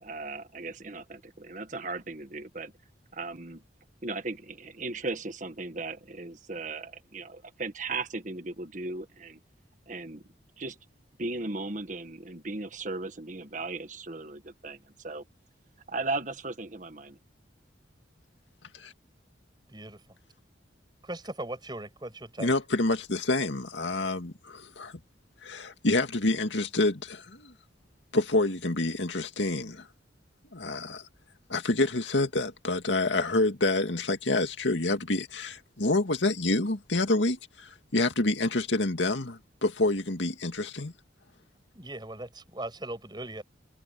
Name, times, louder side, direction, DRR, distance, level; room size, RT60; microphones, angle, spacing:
voice 1, 0.0-2.7 3.1-3.6 4.0-9.4 9.9-10.2 10.6-10.8 11.2-15.2 15.9-17.2, right 3 dB, 45° right, 1.5 m, -37 dB
voice 2, 19.7-20.2 21.0-22.5 41.7-43.4, right 1 dB, 25° right, 7.6 m, -39 dB
voice 3, 22.4-25.0 25.4-27.5 28.1-29.9 30.5-31.1 31.5-40.9, left 2 dB, 85° left, 2.2 m, -27 dB
head